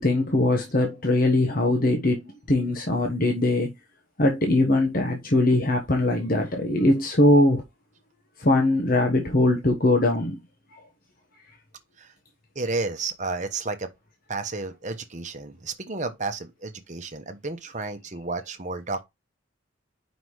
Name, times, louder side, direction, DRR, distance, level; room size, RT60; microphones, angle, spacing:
voice 1, 0.0-2.2 2.5-3.7 4.2-7.6 8.4-10.4, left 1 dB, 45° left, 1.1 m, -21 dB
voice 2, 12.5-13.9 14.3-19.0, right 3 dB, 35° right, 1.0 m, -32 dB
5.2 x 4.0 x 4.7 m
head